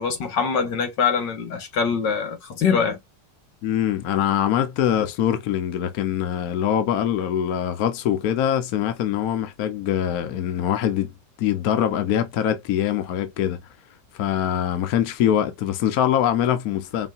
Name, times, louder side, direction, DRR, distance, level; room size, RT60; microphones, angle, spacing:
voice 1, 0.0-3.0, left 6 dB, 80° left, 2.0 m, -23 dB
voice 2, 3.6-11.1 11.4-13.6 14.1-17.1, left 10 dB, 65° left, 1.1 m, -23 dB
5.4 x 2.7 x 2.4 m
omnidirectional pair, 1.9 m